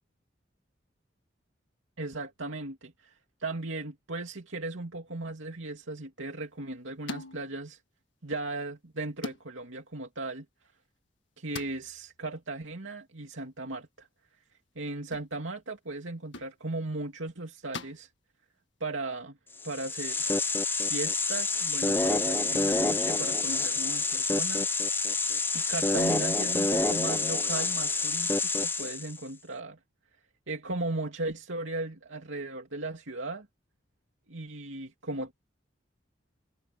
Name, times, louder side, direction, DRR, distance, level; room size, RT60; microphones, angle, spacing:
voice 1, 2.0-3.1 3.4-7.8 8.2-10.4 11.4-14.1 14.8-18.1 18.8-19.4 19.6-20.2 20.8-25.1 25.5-29.8 30.5-33.5 34.3-35.3, right 2 dB, 85° right, 2.7 m, -37 dB
sound 1, 7.1-7.6 9.2-9.5 11.5-12.2 15.1-15.3 16.3-16.6 17.7-18.0, left 3 dB, 75° left, 1.8 m, -41 dB
sound 2, 19.6-29.2, left 3 dB, 10° left, 0.5 m, -28 dB
head